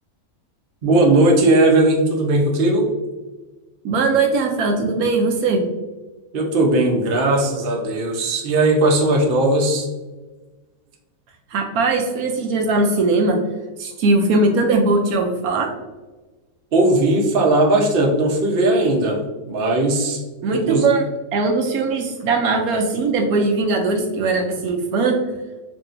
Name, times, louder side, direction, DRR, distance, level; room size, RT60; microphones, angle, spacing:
voice 1, 0.8-2.9 6.3-9.9 16.7-19.2 19.5-20.2 20.5-20.9, right 2 dB, 45° right, 0 dB, 0.8 m, -17 dB
voice 2, 3.8-5.6 11.5-13.4 13.8-15.7 20.4-21.0 21.3-25.2, right 3 dB, 75° right, 2 dB, 1.1 m, -19 dB
4.7 x 2.8 x 2.5 m, 1.2 s
omnidirectional pair, 1.6 m